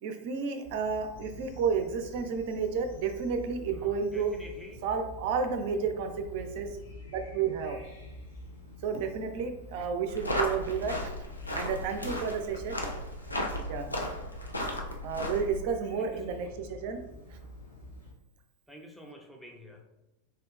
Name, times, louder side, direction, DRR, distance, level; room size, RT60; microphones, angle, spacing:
voice 1, 0.0-4.3 4.8-6.7 7.1-7.8 8.8-11.1 11.5-12.8 13.7-14.1 15.0-17.0, right 6 dB, 50° right, 6 dB, 0.4 m, -31 dB
sound 1, 0.6-18.1, left 1 dB, 65° left, 1.1 m, -47 dB
voice 2, 3.7-4.8 16.0-16.5 18.7-19.8, equal, ahead, 0 dB, 0.6 m, -49 dB
sound 2, 10.1-15.6, left 1 dB, 80° left, 0.4 m, -35 dB
3.4 x 2.8 x 2.3 m, 0.94 s
figure-of-eight pair, 90°, 0 cm